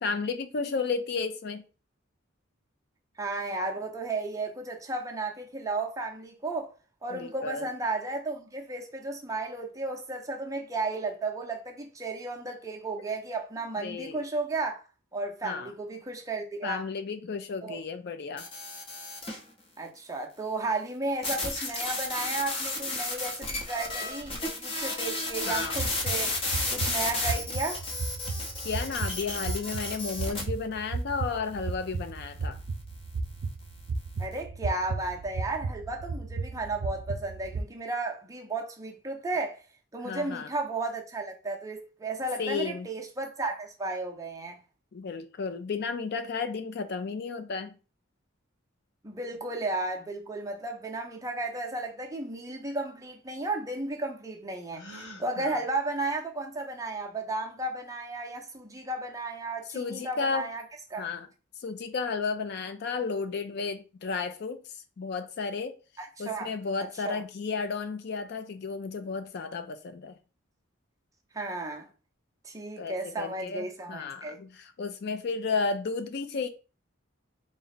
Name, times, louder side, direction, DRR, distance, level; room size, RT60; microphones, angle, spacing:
voice 1, 0.0-1.6 7.1-7.7 13.8-14.2 15.4-15.7 16.6-18.5 25.5-25.8 28.6-32.6 40.0-40.5 42.4-42.9 44.9-47.8 55.4-55.6 59.7-60.5 61.0-61.3 61.6-64.6 65.0-65.8 66.2-70.1 72.8-76.5, left 4 dB, 55° left, 0.4 m, -33 dB
voice 2, 3.2-6.7 7.0-14.8 15.1-16.8 17.6-17.8 19.8-26.4 26.7-27.8 34.2-39.6 39.9-44.6 49.0-54.8 55.2-60.6 60.9-61.1 66.0-66.5 67.0-67.2 71.3-71.9 72.4-74.4, right 2 dB, 15° right, 0.6 m, -34 dB
sound 1, 18.4-19.4 21.2-30.4, left 2 dB, 30° left, 0.8 m, -33 dB
sound 2, 25.5-37.6, right 4 dB, 70° right, 0.4 m, -35 dB
Gasp, 54.7-55.3, left 1 dB, 90° left, 1.2 m, -44 dB
3.9 x 2.1 x 4.0 m
head